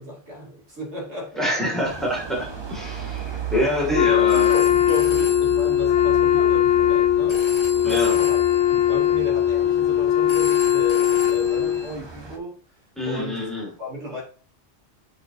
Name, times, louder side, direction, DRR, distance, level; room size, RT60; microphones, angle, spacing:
voice 1, 0.0-1.7 3.1-3.2 4.0-7.4 7.7-8.4 8.7-12.6 13.0-13.5 13.8-14.2, equal, 80° right, 3.1 m, -34 dB
voice 2, 1.4-4.5 7.8-8.2 13.0-13.7, left 1 dB, ahead, 2.3 m, -26 dB
sound 1, 1.8-12.4, right 7 dB, 25° right, 0.9 m, -36 dB
Wind instrument woodwind instrument, 3.9-11.9, left 11 dB, 80° left, 1.0 m, -19 dB
Telephone, 4.1-11.9, left 2 dB, 25° left, 1.2 m, -39 dB
7.9 x 5.1 x 2.7 m
omnidirectional pair, 1.1 m